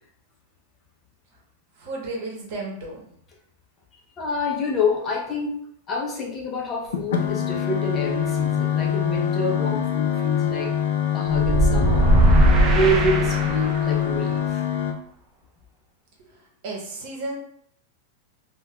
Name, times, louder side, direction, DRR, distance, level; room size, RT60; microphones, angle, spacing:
voice 1, 1.8-3.0 16.2-16.3 16.6-17.4, right 2 dB, 55° right, -1 dB, 0.9 m, -33 dB
voice 2, 4.2-5.6 5.9-10.7 11.1-12.1 12.7-14.6, left 1 dB, 25° left, -1 dB, 0.5 m, -27 dB
sound 1, 6.9-14.9, left 9 dB, 75° left, 0.5 m, -24 dB
sound 2, 11.3-13.9, right 1 dB, 25° right, 0.4 m, -19 dB
3.9 x 2.2 x 2.2 m, 0.67 s
supercardioid pair, 145°, 0 cm